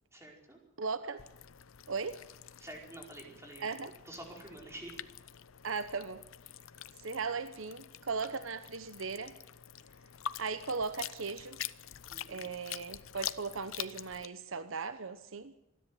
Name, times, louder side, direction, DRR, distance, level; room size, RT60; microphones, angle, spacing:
voice 1, 0.1-0.6 2.6-3.8 4.0-5.0 12.1-12.4, right 1 dB, 15° right, 0 dB, 4.7 m, -48 dB
voice 2, 0.8-1.2 1.9-2.2 3.6-3.9 5.6-6.2 7.0-9.4 10.4-11.6 12.3-15.5, right 4 dB, 80° right, 12 dB, 1.0 m, -37 dB
sound 1, 1.2-14.3, left 11 dB, 90° left, 0.7 m, -46 dB
26.5 x 10.5 x 9.3 m, 0.89 s
head